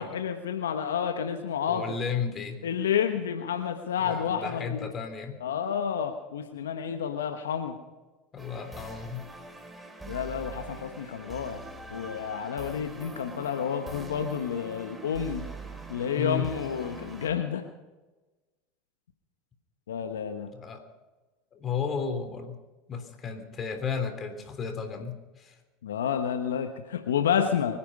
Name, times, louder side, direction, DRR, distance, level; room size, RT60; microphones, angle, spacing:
voice 1, 0.0-1.9 2.6-4.8 5.4-7.7 10.1-11.6 11.9-15.5 15.9-17.6 19.9-20.5 25.8-27.8, left 8 dB, 85° left, 7 dB, 1.1 m, -30 dB
voice 2, 1.7-2.6 4.0-5.4 8.3-9.3 16.2-16.5 20.5-20.8 21.5-22.6 22.9-25.6, left 6 dB, 35° left, 6 dB, 3.4 m, -33 dB
sound 1, 8.4-17.3, right 3 dB, 10° right, 2.9 m, -43 dB
24.0 x 10.5 x 5.4 m, 1.2 s
hypercardioid pair, 85°, 0 cm